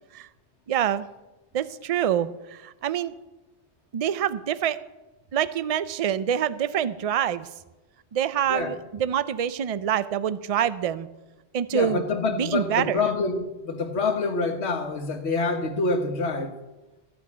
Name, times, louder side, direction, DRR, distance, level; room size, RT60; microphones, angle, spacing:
voice 1, 0.7-1.1 1.5-3.1 3.9-4.8 5.3-7.5 8.1-11.1 11.5-12.0 12.3-13.0, right 9 dB, 45° right, 0.5 m, -26 dB
voice 2, 11.7-16.6, left 3 dB, 85° left, 1.5 m, -26 dB
14.0 x 6.2 x 8.4 m
omnidirectional pair, 1.1 m